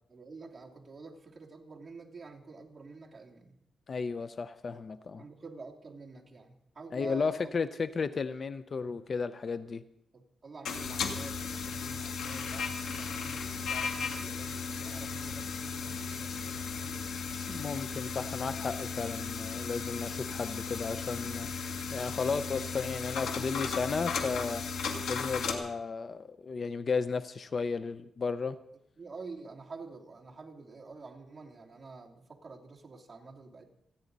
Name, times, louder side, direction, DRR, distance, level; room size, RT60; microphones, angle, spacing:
voice 1, 0.1-3.5 5.2-7.5 8.0-8.1 10.1-17.0 25.5-25.6 29.0-33.6, right 4 dB, 25° right, -2 dB, 2.9 m, -48 dB
voice 2, 3.9-5.2 6.9-9.8 17.5-24.6 25.1-28.6, left 5 dB, 40° left, 13 dB, 0.5 m, -34 dB
sound 1, 10.6-25.5, left 5 dB, 85° left, 2.2 m, -36 dB
29.0 x 10.0 x 4.0 m, 0.79 s
cardioid pair, 120°, 0 cm